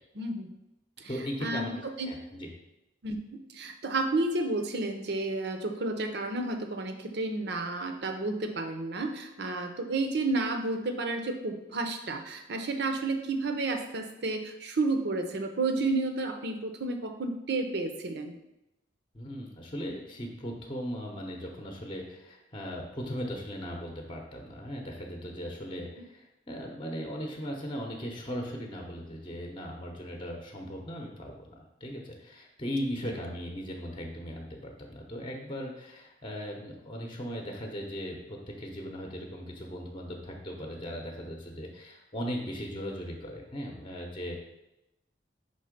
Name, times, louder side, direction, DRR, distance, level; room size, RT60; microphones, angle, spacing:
voice 1, 0.2-0.5 1.0-1.1 1.4-1.6 2.0-2.1 3.0-3.2 3.5-18.3 33.0-33.1, right 2 dB, 60° right, 6 dB, 0.7 m, -31 dB
voice 2, 1.1-2.5 19.1-31.5 31.8-44.4, equal, 25° left, 1 dB, 0.8 m, -38 dB
5.4 x 3.6 x 5.1 m, 0.93 s
head